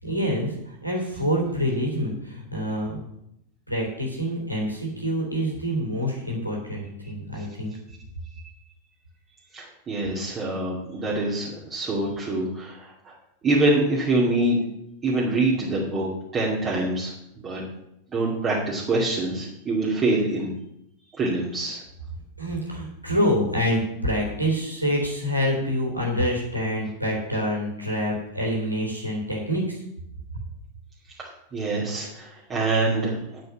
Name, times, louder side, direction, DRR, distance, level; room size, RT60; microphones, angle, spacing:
voice 1, 0.0-3.0 3.7-7.7 22.4-29.8 30.3-30.4, equal, 90° right, -1 dB, 3.7 m, -26 dB
voice 2, 9.5-13.1 13.4-14.6 15.0-17.6 18.1-20.5 21.1-21.8 31.2-33.4, right 2 dB, 25° right, -5 dB, 2.5 m, -25 dB
9.3 x 7.7 x 7.3 m, 0.80 s
figure-of-eight pair, 90°, 0 cm